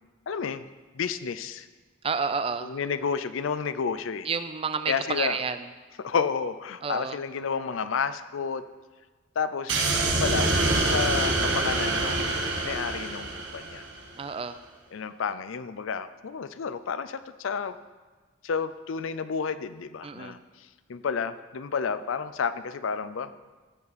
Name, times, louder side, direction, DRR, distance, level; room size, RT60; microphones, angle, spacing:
voice 1, 0.3-0.6 0.9-1.7 2.6-4.3 4.9-5.4 6.0-8.6 9.4-10.5 10.9-12.4 12.6-13.9 14.9-17.8 18.4-20.4 20.9-23.3, left 6 dB, 75° left, 13 dB, 0.5 m, -31 dB
voice 2, 2.0-2.7 4.3-5.6 6.8-7.2 14.2-14.6 20.0-20.3, right 5 dB, 30° right, 11 dB, 0.4 m, -30 dB
sound 1, 9.7-14.0, right 2 dB, 65° right, 1.4 m, -26 dB
15.5 x 5.5 x 4.1 m, 1.3 s
head